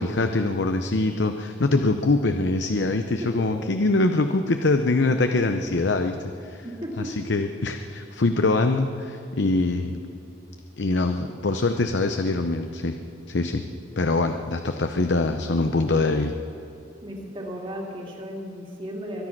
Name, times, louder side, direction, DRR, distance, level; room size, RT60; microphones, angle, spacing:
voice 1, 0.0-6.6 7.0-10.0 10.8-13.0 13.3-13.6 14.0-16.3, left 2 dB, 65° left, 7 dB, 0.7 m, -23 dB
voice 2, 6.6-7.1 17.0-19.3, equal, 25° right, -1 dB, 2.6 m, -35 dB
22.5 x 10.0 x 6.0 m, 2.8 s
head